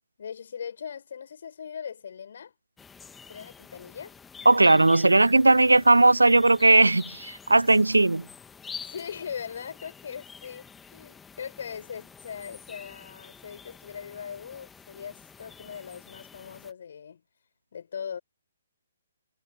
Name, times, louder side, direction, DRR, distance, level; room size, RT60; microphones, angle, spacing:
voice 1, 0.2-2.5 3.3-4.1 8.8-17.2 17.7-18.2, left 7 dB, 50° left, 5.5 m, -40 dB
sound 1, 2.8-16.7, left 6 dB, 10° left, 2.1 m, -47 dB
voice 2, 4.5-8.2, right 2 dB, 80° right, 0.4 m, -18 dB
figure-of-eight pair, 130°, 0 cm